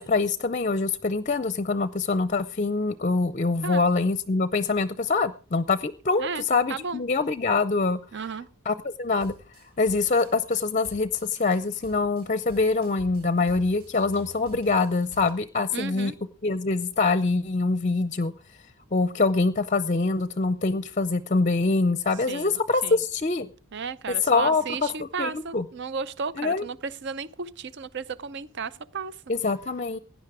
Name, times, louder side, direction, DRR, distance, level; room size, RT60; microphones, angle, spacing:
voice 1, 0.0-8.0 8.7-9.3 9.8-16.1 16.4-18.3 18.9-23.5 24.3-24.6 25.0-25.6 26.4-26.6 29.3-30.0, left 3 dB, 35° left, 0.5 m, -24 dB
voice 2, 6.7-7.0 8.1-8.5 15.7-16.1 22.3-23.0 23.7-29.2, right 5 dB, 55° right, 0.6 m, -34 dB
sound 1, 9.2-15.3, left 1 dB, 85° right, 4.1 m, -49 dB
16.5 x 10.5 x 4.8 m
head